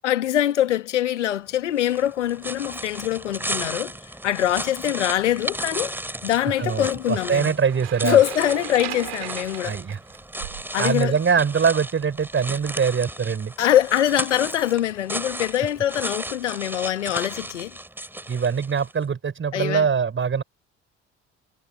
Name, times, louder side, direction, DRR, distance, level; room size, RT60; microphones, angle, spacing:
voice 1, 0.0-3.9 4.2-7.5 8.0-9.8 10.7-11.1 13.6-17.8 19.5-19.9, left 12 dB, 75° left, 1.7 m, -23 dB
sound 1, 1.8-19.0, right 1 dB, 5° right, 3.3 m, -35 dB
voice 2, 6.5-8.2 9.6-10.0 10.8-13.5 18.3-20.4, right 6 dB, 35° right, 6.1 m, -23 dB
sound 2, 7.7-10.7, right 21 dB, 70° right, 5.4 m, -36 dB
figure-of-eight pair, 50°, 36 cm